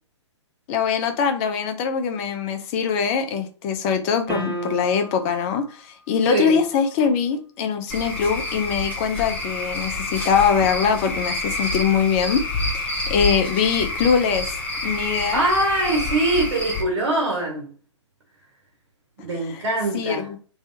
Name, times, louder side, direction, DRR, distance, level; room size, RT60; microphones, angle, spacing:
voice 1, 0.7-14.6 14.8-15.4 19.9-20.4, left 6 dB, 30° left, 0.7 m, -22 dB
sound 1, 4.3-5.3, right 3 dB, 10° right, 1.6 m, -31 dB
voice 2, 6.3-6.6 15.3-17.7 19.2-20.3, right 2 dB, 60° right, 1.6 m, -23 dB
Cricket / Frog, 7.9-16.8, left 2 dB, 10° left, 1.3 m, -28 dB
3.5 x 3.2 x 2.8 m
figure-of-eight pair, 120°, 15 cm